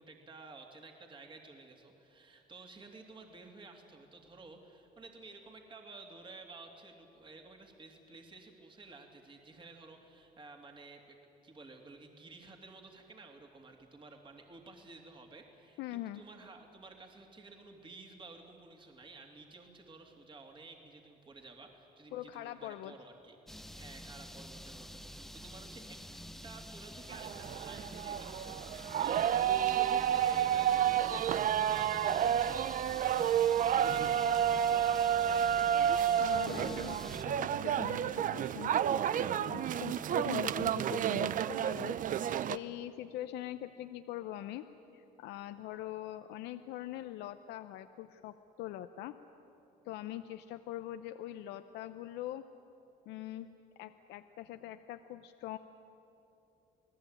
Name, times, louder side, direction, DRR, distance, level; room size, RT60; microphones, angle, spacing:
voice 1, 0.0-11.2 11.4-26.0 26.4-29.3 29.6-35.0, right 3 dB, 30° right, 3 dB, 3.0 m, -53 dB
voice 2, 15.8-16.2 22.1-22.9 36.2-39.0 39.4-44.7 44.9-49.2 49.8-52.4 53.1-53.5 53.8-55.6, left 13 dB, 85° left, 9 dB, 0.8 m, -43 dB
sound 1, 23.5-37.2, equal, ahead, 0.7 m, -48 dB
sound 2, 27.1-42.6, right 9 dB, 50° right, 0.6 m, -30 dB
29.0 x 19.0 x 9.2 m, 3.0 s
cardioid pair, 110°, 17 cm